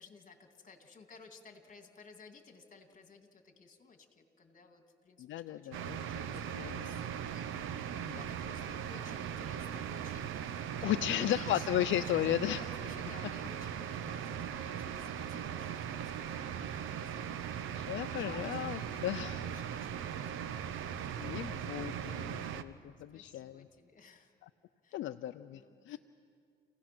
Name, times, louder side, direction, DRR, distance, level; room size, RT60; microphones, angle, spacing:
voice 1, 0.0-7.4 8.1-17.1 17.4-17.5 17.9-22.3 23.1-24.3 24.8-25.0 25.5-26.0, left 4 dB, 40° left, 5 dB, 2.4 m, -56 dB
voice 2, 5.2-6.0 6.3-6.9 7.3-7.4 8.0-8.2 10.8-12.6 17.7-19.5 21.2-23.7 24.9-26.0, left 13 dB, 75° left, 10 dB, 0.5 m, -35 dB
sound 1, 5.7-22.6, right 8 dB, 90° right, 0.8 m, -39 dB
29.0 x 16.5 x 6.0 m, 2.3 s
cardioid pair, 90°, 20 cm